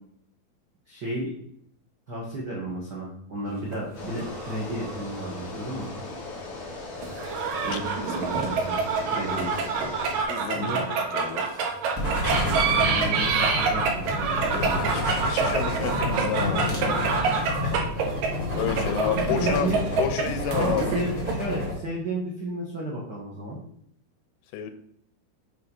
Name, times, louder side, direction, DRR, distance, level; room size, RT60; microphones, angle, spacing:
voice 1, 0.9-1.3 2.1-5.9 7.6-8.8 9.1-9.5 10.5-10.9 12.2-14.9 17.6-17.8 19.2-20.0 20.5-23.6, right 1 dB, 90° right, -5 dB, 0.9 m, -32 dB
sound 1, 3.6-5.0 5.4-5.5 7.0-21.3, right 5 dB, 70° right, 2.5 m, -27 dB
sound 2, 3.9-10.2, left 2 dB, 45° left, 2.2 m, -38 dB
voice 2, 7.7-8.3 10.3-11.5 14.5-16.8 18.5-19.7 20.0-20.9 24.5-24.7, left 9 dB, 90° left, 8 dB, 2.7 m, -31 dB
sound 3, 11.9-21.7, left 1 dB, 20° left, 1.0 m, -29 dB
7.6 x 3.2 x 5.4 m, 0.69 s
omnidirectional pair, 4.4 m